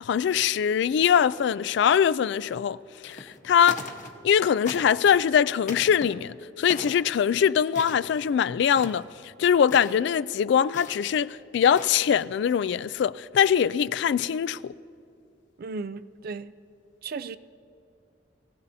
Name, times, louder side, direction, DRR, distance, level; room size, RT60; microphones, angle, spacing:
voice 1, 0.0-2.8 3.0-3.9 4.2-9.0 9.4-14.7, left 8 dB, 65° left, 0.3 m, -22 dB
sound 1, 3.0-3.4 3.6-4.3 4.6-5.1 5.6-6.1 6.7-7.0 7.7-8.3 8.6-9.1 9.6-10.0 10.7-11.1 11.6-12.2, left 3 dB, 45° left, 1.1 m, -40 dB
voice 2, 15.6-16.5 17.0-17.4, right 4 dB, 55° right, 0.4 m, -35 dB
23.5 x 16.0 x 2.7 m
head